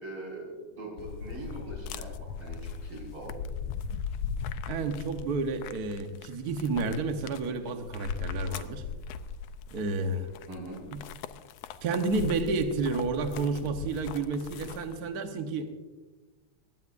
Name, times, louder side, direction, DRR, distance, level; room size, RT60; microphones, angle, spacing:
voice 1, 0.0-3.4 10.5-10.8, right 1 dB, 45° right, -2 dB, 6.1 m, -42 dB
sound 1, 1.0-15.1, left 6 dB, 75° left, 1.6 m, -39 dB
voice 2, 4.7-8.8 9.7-10.3 10.9-11.0 11.8-15.7, right 3 dB, 70° right, 5 dB, 0.9 m, -30 dB
20.5 x 16.5 x 2.6 m, 1.2 s
omnidirectional pair, 3.3 m